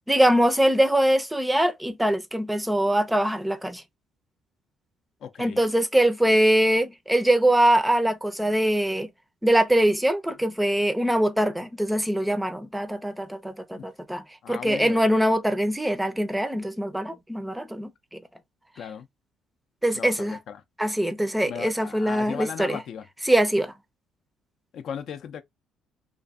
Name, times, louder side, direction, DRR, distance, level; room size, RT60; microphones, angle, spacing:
voice 1, 0.1-3.8 5.4-9.1 9.4-18.2 19.8-20.4 20.8-22.8 23.3-23.7, right 1 dB, 5° right, 0.5 m, -23 dB
voice 2, 5.2-5.6 13.8-13.9 14.4-15.2 18.8-19.1 19.9-20.6 21.5-23.1 24.7-25.4, left 8 dB, 60° left, 0.4 m, -36 dB
2.5 x 2.5 x 2.3 m
supercardioid pair, 80°, 0 cm